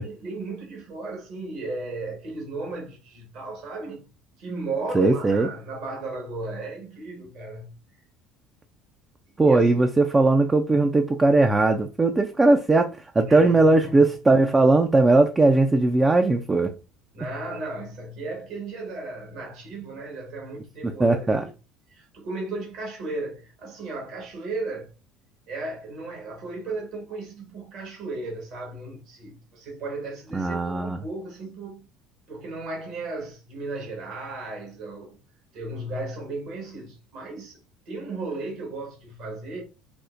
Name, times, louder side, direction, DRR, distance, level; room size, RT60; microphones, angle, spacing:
voice 1, 0.0-4.0 4.4-7.7 9.4-9.7 13.2-14.1 17.1-21.3 21.9-24.9 25.5-31.9 32.3-35.2 35.5-37.6 37.9-39.6, right 3 dB, 65° right, 1.4 m, -35 dB
voice 2, 4.9-5.5 9.4-16.7 20.8-21.5 30.3-31.0, right 2 dB, 20° right, 0.4 m, -19 dB
5.1 x 2.0 x 2.5 m
hypercardioid pair, 70°, 0 cm